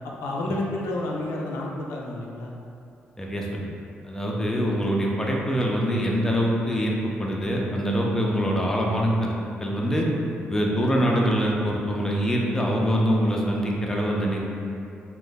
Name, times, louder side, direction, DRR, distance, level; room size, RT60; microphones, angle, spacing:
voice 1, 0.2-2.5, left 1 dB, 90° left, -2 dB, 0.4 m, -30 dB
voice 2, 3.2-3.7 4.0-9.3 9.6-10.1 10.5-14.4, equal, 10° left, -2 dB, 0.4 m, -24 dB
2.5 x 2.1 x 3.8 m, 2.6 s
cardioid pair, 85°, 4 cm